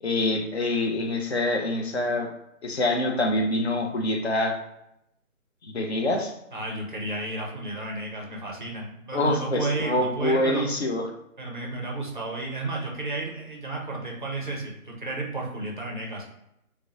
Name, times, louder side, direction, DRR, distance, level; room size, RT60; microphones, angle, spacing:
voice 1, 0.0-2.3 2.6-4.6 5.6-6.3 9.1-11.0, left 1 dB, 50° left, 3 dB, 0.4 m, -25 dB
voice 2, 6.5-10.7 11.4-16.3, right 2 dB, 35° right, -1 dB, 0.5 m, -32 dB
2.8 x 2.0 x 2.3 m, 0.81 s
figure-of-eight pair, 160°, 43 cm